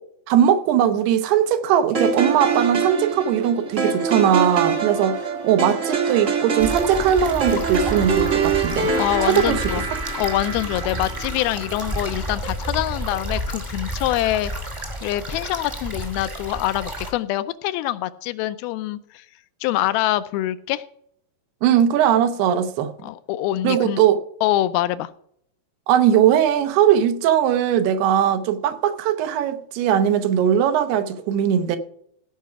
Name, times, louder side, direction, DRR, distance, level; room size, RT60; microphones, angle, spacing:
voice 1, 0.3-8.9 9.2-9.6 21.6-22.9 23.6-24.2 25.9-31.8, right 9 dB, 90° right, 2.9 m, -19 dB
sound 1, 1.9-12.2, right 5 dB, 65° right, 0.7 m, -25 dB
sound 2, 6.6-17.1, equal, 20° right, 0.8 m, -31 dB
voice 2, 8.9-9.9 10.2-14.5 15.0-19.3 19.6-20.8 23.0-24.0 24.4-25.1, left 14 dB, 80° left, 2.3 m, -24 dB
16.0 x 5.7 x 5.8 m
omnidirectional pair, 4.5 m